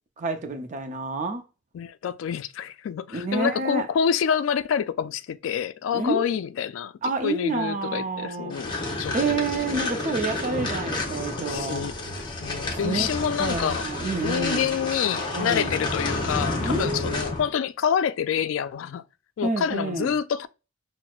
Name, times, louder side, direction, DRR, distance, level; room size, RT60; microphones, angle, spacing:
voice 1, 0.2-1.4 3.1-3.9 5.9-6.4 7.0-8.6 9.1-11.9 12.7-13.1 13.4-14.7 15.3-15.7 16.6-17.4 19.4-20.1, right 3 dB, 40° right, 0.5 m, -28 dB
voice 2, 1.7-6.9 7.2-9.4 11.4-11.9 12.4-13.8 14.2-19.0 19.4-20.5, left 8 dB, 85° left, 0.3 m, -27 dB
sound 1, 8.5-17.5, left 2 dB, 25° left, 0.8 m, -30 dB
5.9 x 2.0 x 2.3 m
head